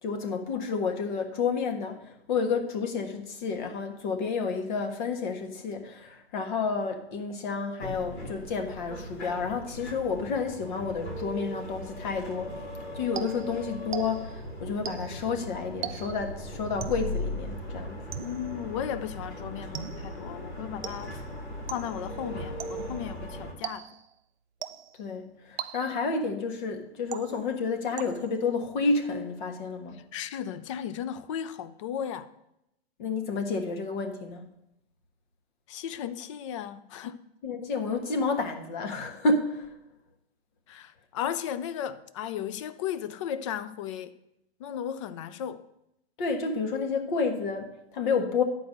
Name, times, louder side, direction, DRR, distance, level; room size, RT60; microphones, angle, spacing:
voice 1, 0.0-12.6 12.9-18.0 25.0-30.0 33.0-34.4 37.4-39.7 46.2-48.4, left 4 dB, 45° left, 1.5 m, -30 dB
sound 1, 7.8-23.5, left 1 dB, 85° left, 3.3 m, -39 dB
sound 2, 13.2-14.4 14.9-15.3 15.8-16.3 16.8-17.2 18.1-18.6 19.7-20.2 20.8-21.3 21.7-22.1 22.6-23.0 23.6-24.1 24.6-25.1 25.6-26.1 27.1-27.6 28.0-28.5, right 10 dB, 65° right, 0.6 m, -40 dB
voice 2, 18.2-21.2 21.7-24.0 29.9-32.3 35.7-37.3 40.7-44.1 44.6-45.6, left 9 dB, 30° left, 0.4 m, -35 dB
11.0 x 4.6 x 6.5 m
hypercardioid pair, 145°, 32 cm